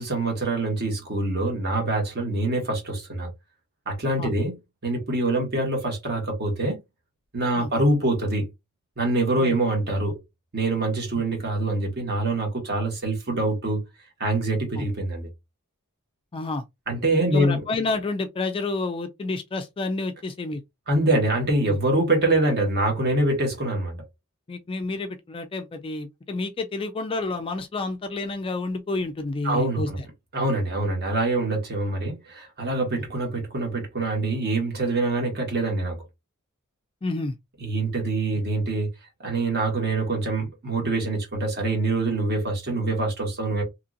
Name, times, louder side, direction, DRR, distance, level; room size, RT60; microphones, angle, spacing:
voice 1, 0.0-3.3 3.9-4.6 4.8-6.8 7.3-8.5 9.0-10.2 10.5-13.8 14.2-15.3 16.9-17.6 20.9-24.0 29.4-30.0 30.3-36.0 37.6-38.9 39.2-43.6, right 2 dB, 45° right, 1.3 m, -25 dB
voice 2, 16.3-16.6 17.3-20.6 21.7-21.8 24.5-29.9 37.0-37.4, left 3 dB, 25° left, 0.3 m, -29 dB
2.9 x 2.6 x 2.5 m
head